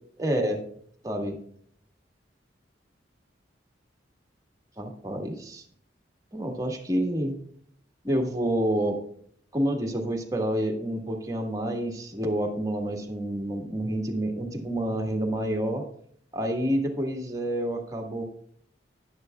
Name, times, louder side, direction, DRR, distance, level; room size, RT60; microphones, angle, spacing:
voice 1, 0.2-0.6 1.0-1.4 4.8-5.6 6.3-7.3 8.0-9.0 9.5-15.8 16.3-18.2, right 1 dB, 20° right, 3 dB, 1.5 m, -28 dB
11.0 x 11.0 x 2.3 m, 0.63 s
head